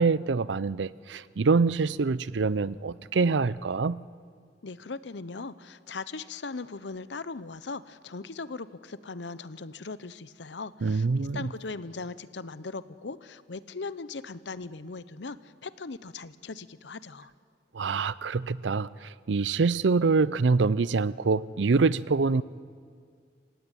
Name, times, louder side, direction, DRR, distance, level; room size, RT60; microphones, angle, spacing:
voice 1, 0.0-4.0 10.8-11.5 17.7-18.9 19.3-22.4, right 4 dB, 85° right, 19 dB, 0.5 m, -25 dB
voice 2, 4.6-11.1 11.3-17.3, left 3 dB, 75° left, 15 dB, 0.8 m, -39 dB
27.0 x 16.0 x 9.1 m, 2.1 s
head